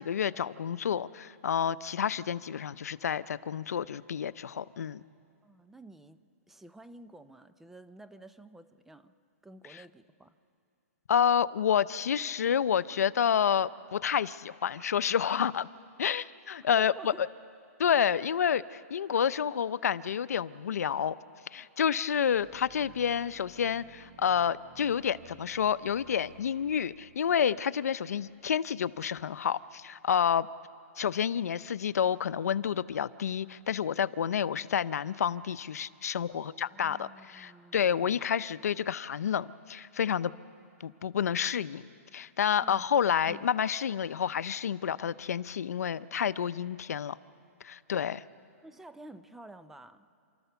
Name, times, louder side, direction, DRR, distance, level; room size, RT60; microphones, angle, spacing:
voice 1, 0.0-5.0 9.7-9.8 11.1-15.7 16.0-17.3 17.8-21.2 21.5-30.5 31.0-40.3 40.8-41.8 42.1-47.2 47.6-48.2, left 8 dB, 90° left, 16 dB, 0.6 m, -29 dB
voice 2, 5.4-9.1 9.4-10.4 16.6-17.2 36.3-38.2 42.6-42.8 43.3-43.4 48.6-50.1, right 2 dB, 5° right, 12 dB, 0.4 m, -51 dB
sound 1, 22.3-29.0, right 5 dB, 55° right, 4.7 m, -58 dB
29.0 x 13.5 x 6.9 m, 2.5 s
hypercardioid pair, 165°, 8 cm